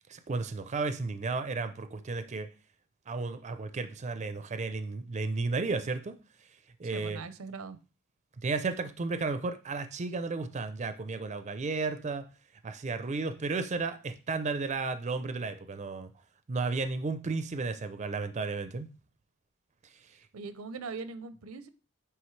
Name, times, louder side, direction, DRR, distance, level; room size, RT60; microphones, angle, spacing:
voice 1, 0.1-2.5 3.1-6.2 6.8-7.2 8.4-12.3 12.6-16.1 16.5-18.9, right 3 dB, 35° right, 0.4 m, -33 dB
voice 2, 6.9-7.8 20.3-21.7, right 4 dB, 85° right, 0.6 m, -41 dB
9.3 x 3.4 x 3.2 m
head